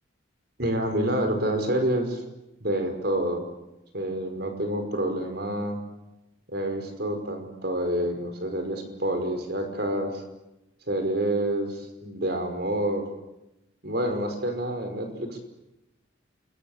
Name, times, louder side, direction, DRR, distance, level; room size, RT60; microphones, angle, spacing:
voice 1, 0.6-2.2 2.6-3.4 3.9-5.8 6.5-10.2 10.9-13.1 13.8-15.4, right 1 dB, 55° right, 6 dB, 5.4 m, -28 dB
28.5 x 23.0 x 8.8 m, 0.95 s
head